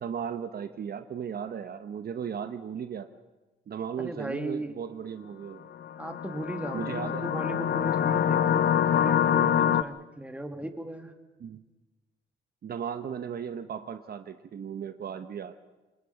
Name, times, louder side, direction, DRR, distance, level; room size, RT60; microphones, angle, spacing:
voice 1, 0.0-3.1 3.7-5.7 6.7-7.2 9.5-9.8 11.4-11.6 12.6-15.5, right 7 dB, 50° right, 9 dB, 1.0 m, -36 dB
voice 2, 4.0-4.8 6.0-11.1, right 1 dB, 5° right, 5 dB, 2.4 m, -37 dB
sound 1, 5.8-9.8, left 9 dB, 55° left, 0.8 m, -25 dB
27.0 x 20.5 x 5.8 m, 1.2 s
cardioid pair, 90°, 20 cm